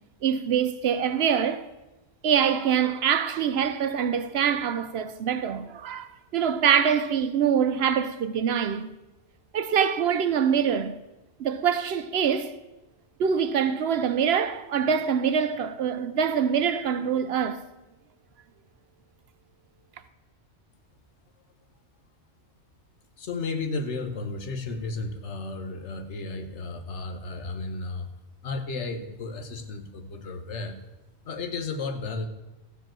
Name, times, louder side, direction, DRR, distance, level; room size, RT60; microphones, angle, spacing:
voice 1, 0.2-1.7 2.2-8.9 9.5-11.0 11.4-12.6 13.2-17.6, right 7 dB, 65° right, 0.8 m, -24 dB
voice 2, 23.2-28.1 28.4-30.8 31.2-32.3, left 3 dB, 75° left, 1.3 m, -33 dB
14.5 x 5.0 x 7.5 m
omnidirectional pair, 1.2 m